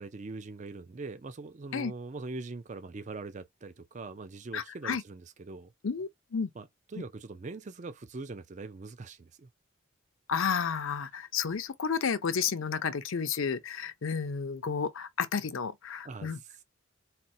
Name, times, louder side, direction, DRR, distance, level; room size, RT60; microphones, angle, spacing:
voice 1, 0.0-5.7 6.6-9.5 16.0-16.6, right 3 dB, 35° right, 0.4 m, -42 dB
voice 2, 4.5-5.0 5.8-6.5 10.3-16.4, left 6 dB, 70° left, 0.5 m, -31 dB
4.2 x 2.1 x 2.6 m
head